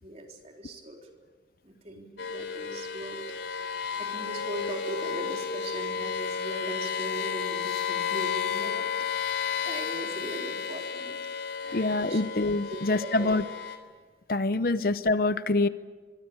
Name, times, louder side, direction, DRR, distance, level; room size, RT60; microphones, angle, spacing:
voice 1, 0.0-1.0 1.6-3.2 4.0-8.9 9.6-11.2 11.6-12.2 12.7-13.3, right 1 dB, 35° right, 1 dB, 3.9 m, -39 dB
sound 1, 2.2-13.8, left 7 dB, 90° left, 3.6 m, -33 dB
voice 2, 11.7-13.4 14.3-15.7, left 2 dB, 55° left, 13 dB, 0.8 m, -25 dB
25.5 x 23.0 x 8.7 m, 1.4 s
head